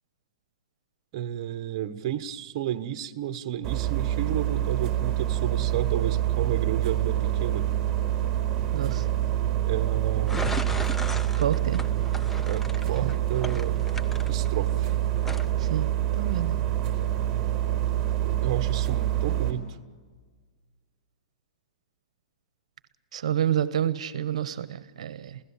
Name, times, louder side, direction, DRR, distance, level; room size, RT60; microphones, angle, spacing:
voice 1, 1.1-7.7 9.6-10.5 12.4-13.9 14.3-14.9 18.2-19.8, right 11 dB, 45° right, 9 dB, 1.2 m, -32 dB
sound 1, 3.6-19.5, right 12 dB, 20° right, 4.3 m, -26 dB
voice 2, 8.7-9.1 11.4-11.8 13.0-13.1 15.6-15.9 16.2-16.6 23.1-25.4, right 10 dB, 75° right, 14 dB, 0.9 m, -28 dB
sound 2, 10.3-14.8 15.2-15.5, left 2 dB, 5° left, 0.6 m, -36 dB
28.5 x 16.5 x 7.3 m, 1.5 s
hypercardioid pair, 150°, 3 cm